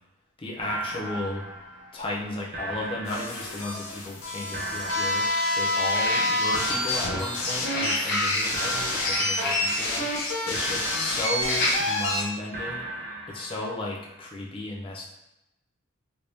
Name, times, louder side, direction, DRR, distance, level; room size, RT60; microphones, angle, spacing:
voice 1, 0.4-1.5 1.9-5.3 5.5-10.1 10.4-12.8 13.3-15.0, left 2 dB, 25° left, -3 dB, 0.6 m, -34 dB
sound 1, 0.6-2.3 2.5-4.2 4.5-6.2 6.5-8.3 8.5-10.3 10.5-12.2 12.5-14.2, right 1 dB, 40° right, 0.8 m, -38 dB
sound 2, 1.1-1.2 2.2-2.3 2.7-2.8 5.8-6.6 7.5-10.3 10.6-10.8 11.4-11.8 12.3-12.4, left 1 dB, 50° left, 1.0 m, -31 dB
sound 3, 3.1-12.2, left 1 dB, 70° left, 0.7 m, -28 dB
3.4 x 3.0 x 2.7 m, 0.91 s
head